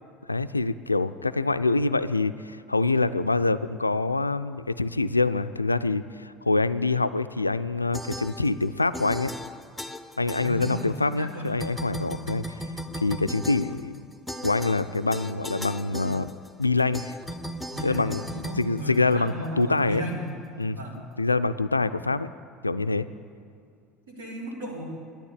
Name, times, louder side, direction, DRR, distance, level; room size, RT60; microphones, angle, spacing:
voice 1, 0.3-9.3 10.2-14.0 14.4-16.3 16.6-17.2 17.8-20.0 20.6-20.8 21.2-22.3 22.6-23.1, left 3 dB, 85° left, 12 dB, 0.3 m, -25 dB
sound 1, 7.9-8.7 8.9-11.3 11.6-19.5, equal, 5° left, 0.8 m, -37 dB
voice 2, 10.4-10.9 11.2-11.5 17.7-18.1 18.4-20.3 20.7-21.0 24.1-24.8, right 1 dB, 70° right, -3 dB, 3.5 m, -35 dB
12.0 x 10.5 x 8.2 m, 2.3 s
figure-of-eight pair, 65°, 0 cm